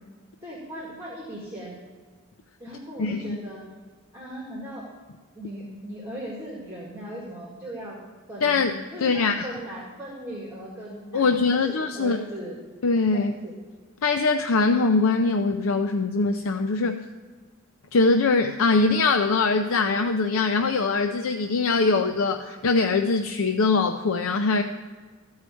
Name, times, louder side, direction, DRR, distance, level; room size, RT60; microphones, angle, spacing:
voice 1, 0.4-1.8 2.6-3.6 4.1-4.9 5.4-8.0 8.3-8.6 8.9-12.6 13.1-13.5, right 1 dB, 15° right, -4 dB, 2.1 m, -38 dB
voice 2, 3.0-3.4 8.4-8.7 9.0-9.5 11.1-12.2 12.8-13.3 14.0-17.0 17.9-24.6, left 3 dB, 80° left, 6 dB, 0.6 m, -22 dB
14.5 x 4.8 x 8.3 m, 1.4 s
head